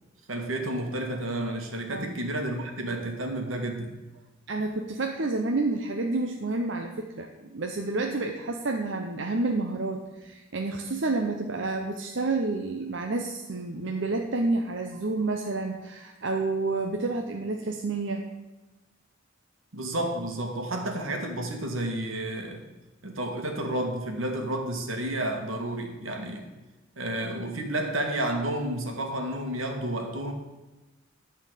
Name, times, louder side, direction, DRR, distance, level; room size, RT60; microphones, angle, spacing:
voice 1, 0.3-4.0 19.7-22.6 23.0-26.5 27.0-30.3, right 1 dB, 85° right, 2 dB, 2.0 m, -31 dB
voice 2, 4.5-18.2, right 3 dB, 65° right, 2 dB, 0.8 m, -29 dB
13.0 x 4.4 x 8.2 m, 1.1 s
head